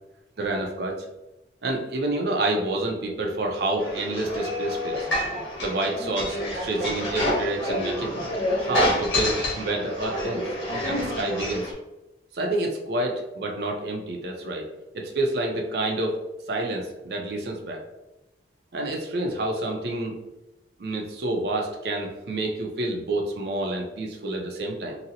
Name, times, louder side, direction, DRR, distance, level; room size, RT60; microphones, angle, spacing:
voice 1, 0.4-1.0 1.6-5.1 5.6-8.1 8.6-10.4 10.8-11.7 12.3-14.7 14.9-16.2 16.5-17.8 18.7-20.2 20.8-25.0, right 2 dB, 55° right, 1 dB, 0.5 m, -28 dB
sound 1, 3.8-11.7, left 1 dB, 85° left, 1.2 m, -28 dB
3.8 x 2.0 x 2.7 m, 0.98 s
head